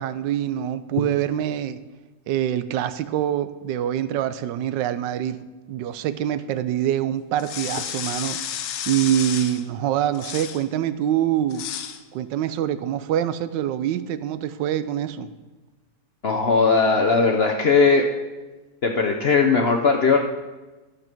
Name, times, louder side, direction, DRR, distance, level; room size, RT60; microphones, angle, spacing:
voice 1, 0.0-1.8 2.3-5.4 5.7-8.4 8.9-11.6 12.1-15.3, right 11 dB, 90° right, 1.3 m, -25 dB
sound 1, 7.4-9.6 10.2-10.6 11.5-12.0, left 9 dB, 85° left, 1.4 m, -32 dB
voice 2, 16.2-18.0 18.8-20.2, left 4 dB, 55° left, 0.7 m, -18 dB
12.0 x 6.6 x 5.9 m
omnidirectional pair, 1.9 m